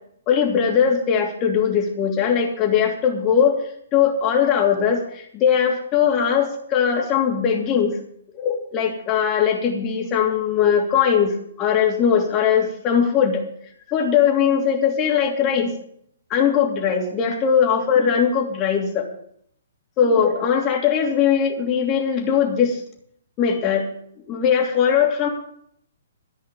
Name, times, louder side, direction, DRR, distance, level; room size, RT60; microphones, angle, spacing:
voice 1, 0.3-3.6 3.9-8.0 8.3-13.4 13.9-15.7 16.3-19.0 20.0-22.8 23.4-23.9 24.3-25.3, left 7 dB, 30° left, 1 dB, 2.9 m, -20 dB
14.5 x 5.6 x 8.7 m, 0.68 s
figure-of-eight pair, 125°, 0 cm